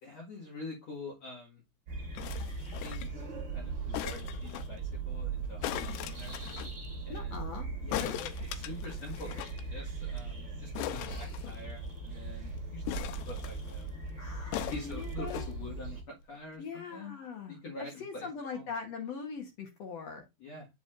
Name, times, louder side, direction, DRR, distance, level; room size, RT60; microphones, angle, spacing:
voice 1, 0.0-1.6 2.8-6.3 7.0-7.4 7.8-8.0 8.4-13.9 14.7-17.2 17.5-18.7 20.4-20.7, left 3 dB, 50° left, 2.4 m, -46 dB
sound 1, 1.9-16.0, right 3 dB, 35° right, 2.3 m, -39 dB
sound 2, 2.2-3.2 3.9-4.7 5.6-6.7 7.9-9.6 9.9-10.0 10.2-10.3 10.8-11.9 12.9-13.8 14.5-15.5 16.2-16.3, left 10 dB, 85° left, 2.8 m, -39 dB
voice 2, 7.1-8.3 14.2-15.5 16.6-20.2, left 5 dB, 70° left, 1.6 m, -41 dB
8.2 x 6.2 x 2.5 m
omnidirectional pair, 4.8 m